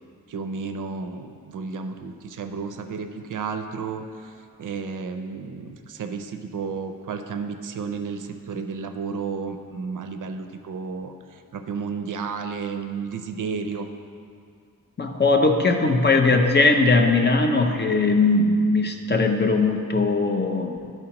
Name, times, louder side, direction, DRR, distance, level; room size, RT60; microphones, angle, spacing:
voice 1, 0.3-13.9, right 5 dB, 60° right, 7 dB, 0.5 m, -32 dB
voice 2, 15.0-20.9, left 3 dB, 30° left, 4 dB, 0.5 m, -20 dB
12.0 x 4.5 x 2.9 m, 2.3 s
wide cardioid pair, 120°, 35 cm